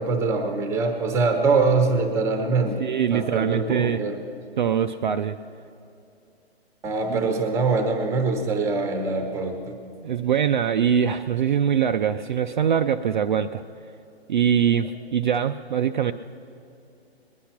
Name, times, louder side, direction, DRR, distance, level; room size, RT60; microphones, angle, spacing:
voice 1, 0.0-2.9 3.1-4.2 6.8-9.8, right 3 dB, 10° right, 6 dB, 0.8 m, -23 dB
voice 2, 2.8-4.0 4.6-5.4 7.1-7.3 10.0-13.6 14.3-16.1, right 8 dB, 50° right, 7 dB, 0.4 m, -23 dB
20.0 x 10.5 x 5.9 m, 2.6 s
hypercardioid pair, 145°, 32 cm